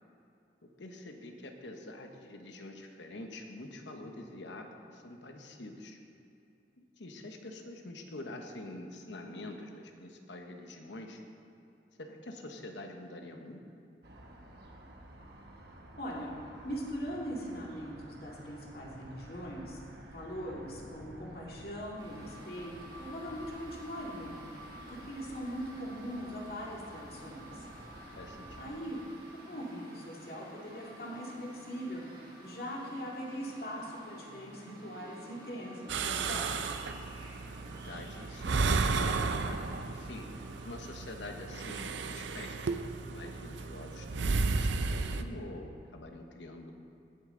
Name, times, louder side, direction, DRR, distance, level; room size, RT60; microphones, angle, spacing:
voice 1, 0.6-6.0 6.8-11.2 12.0-13.6 28.2-28.6 37.6-46.7, left 2 dB, 85° left, 3 dB, 1.1 m, -46 dB
sound 1, 14.0-28.7, right 1 dB, 60° right, 1.1 m, -52 dB
voice 2, 16.0-16.4 16.6-19.8 20.1-24.4 24.9-27.7 28.6-29.0 29.5-32.0 32.4-36.6, equal, 55° left, -4 dB, 2.2 m, -41 dB
sound 2, 22.0-40.7, right 1 dB, 25° right, 2.3 m, -51 dB
sound 3, 35.9-45.2, right 4 dB, 85° right, 0.5 m, -33 dB
18.0 x 6.8 x 3.8 m, 2.7 s
head